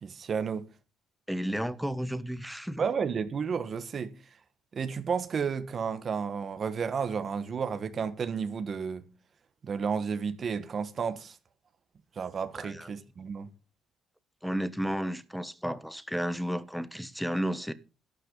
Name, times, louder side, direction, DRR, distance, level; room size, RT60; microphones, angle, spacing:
voice 1, 0.0-0.7 2.8-4.1 4.7-9.1 9.6-11.4 12.1-13.5, right 6 dB, 40° right, 1.4 m, -32 dB
voice 2, 1.3-2.9 12.6-12.9 14.4-17.7, equal, ahead, 1.1 m, -32 dB
12.5 x 12.0 x 4.0 m
cardioid pair, 135°, 0 cm